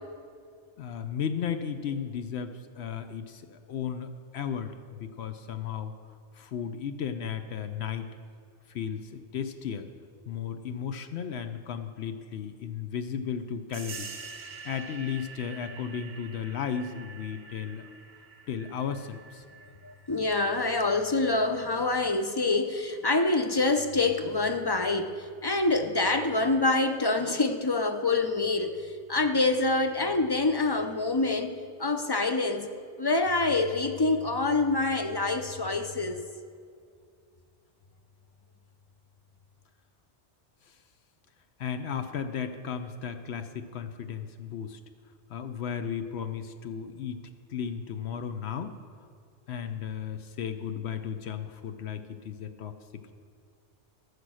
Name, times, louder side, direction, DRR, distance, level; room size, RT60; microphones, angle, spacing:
voice 1, 0.8-5.9 6.3-8.1 8.7-9.9 10.3-14.1 14.6-17.9 18.5-19.4 41.6-44.8 45.3-48.8 49.5-52.7, left 7 dB, 70° left, 9 dB, 0.9 m, -35 dB
sound 1, 13.7-22.0, right 5 dB, 35° right, 0.8 m, -46 dB
voice 2, 19.8-31.5 31.8-32.7 33.0-36.2, left 3 dB, 40° left, 7 dB, 0.3 m, -26 dB
14.5 x 6.8 x 6.2 m, 2.2 s
omnidirectional pair, 1.2 m